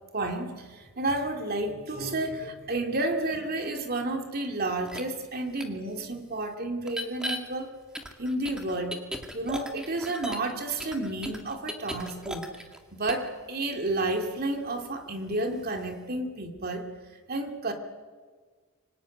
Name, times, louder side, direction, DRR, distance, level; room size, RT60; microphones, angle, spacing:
voice 1, 0.1-7.7 8.2-9.0 9.3-12.5 12.9-16.9 17.3-17.7, right 2 dB, 45° right, 4 dB, 2.7 m, -31 dB
sound 1, 4.9-5.0 5.6-5.7 6.9-7.4 7.9-10.5 10.8-12.8 13.1-13.3, equal, 5° right, 2.0 m, -36 dB
25.0 x 19.5 x 9.4 m, 1.5 s
head